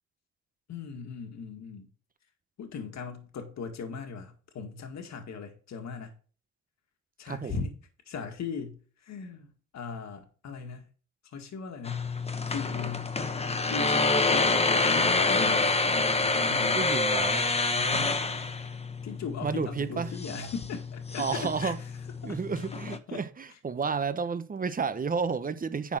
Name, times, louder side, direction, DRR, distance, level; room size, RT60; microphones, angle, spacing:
voice 1, 0.7-1.9 2.6-6.1 7.2-7.8 8.1-10.9 11.3-12.1 12.5-13.1 13.7-15.7 16.2-16.8 17.7-18.2 19.0-21.9 22.2-22.4 22.9-23.2 23.5-23.6, left 5 dB, 65° left, 1.9 m, -39 dB
voice 2, 7.3-7.6 16.8-17.5 19.4-20.1 21.2-21.8 22.2-26.0, right 5 dB, 30° right, 0.9 m, -31 dB
sound 1, 11.8-23.0, left 3 dB, 20° left, 1.2 m, -27 dB
10.5 x 4.3 x 6.1 m
cardioid pair, 90°, 30 cm